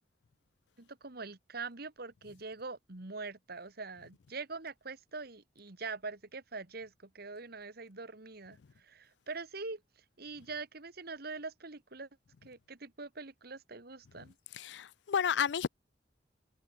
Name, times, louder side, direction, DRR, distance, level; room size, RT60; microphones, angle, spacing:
voice 1, 0.8-9.8 10.2-12.1 12.4-14.3, right 4 dB, 60° right, 1.9 m, -43 dB
voice 2, 14.5-15.7, left 7 dB, 70° left, 0.4 m, -31 dB
head